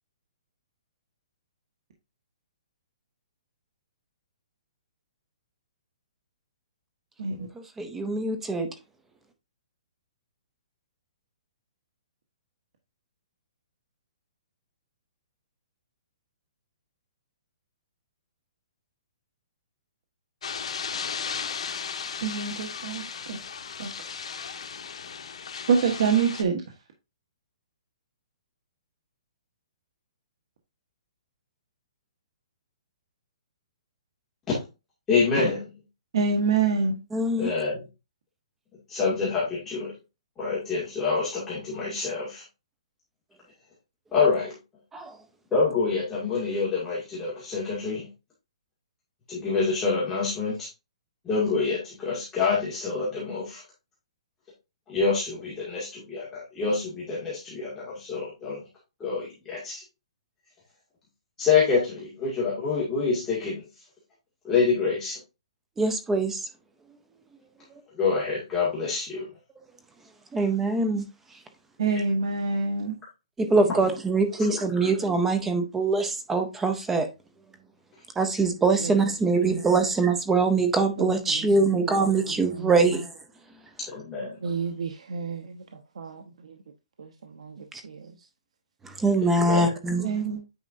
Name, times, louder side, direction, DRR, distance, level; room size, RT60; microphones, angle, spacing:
voice 1, 7.8-8.7 37.1-37.5 44.9-45.1 65.8-66.4 70.3-71.0 73.4-77.1 78.2-83.0 88.8-90.1, right 3 dB, 5° right, 0.6 m, -23 dB
sound 1, 20.4-26.4, left 6 dB, 70° left, 1.4 m, -35 dB
voice 2, 22.2-23.4 23.8-23.9 25.7-26.6 36.1-37.0 71.8-73.0 90.0-90.4, right 5 dB, 50° right, 1.4 m, -25 dB
voice 3, 35.1-35.7 37.4-37.9 38.9-39.9 40.4-42.4 44.1-44.5 45.5-48.1 49.3-50.7 51.2-53.6 54.9-58.6 59.0-59.8 61.4-63.6 64.4-65.2 68.0-69.2 74.8-74.9 83.9-84.3 89.4-89.7, left 4 dB, 10° left, 2.2 m, -26 dB
voice 4, 79.3-79.8 81.0-83.1 84.4-86.6 87.0-88.3, right 5 dB, 80° right, 1.0 m, -36 dB
9.1 x 4.9 x 2.6 m
hypercardioid pair, 175°, 3 cm